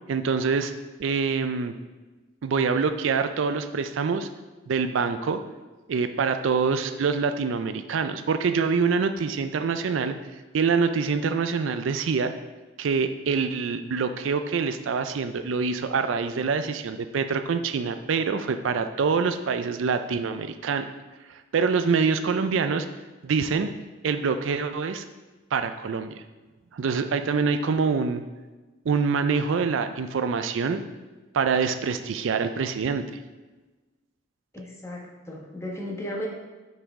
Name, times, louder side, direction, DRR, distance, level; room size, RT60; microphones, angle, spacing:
voice 1, 0.1-0.7 1.0-1.7 2.4-4.3 4.7-5.4 5.9-10.1 10.5-12.3 12.8-20.9 21.3-22.9 23.2-23.7 24.0-25.0 25.5-26.2 26.7-28.2 28.9-30.8 31.3-33.0, right 5 dB, 70° right, 9 dB, 0.4 m, -25 dB
voice 2, 34.5-36.3, left 1 dB, 15° left, -2 dB, 1.1 m, -35 dB
7.5 x 5.8 x 3.6 m, 1.2 s
head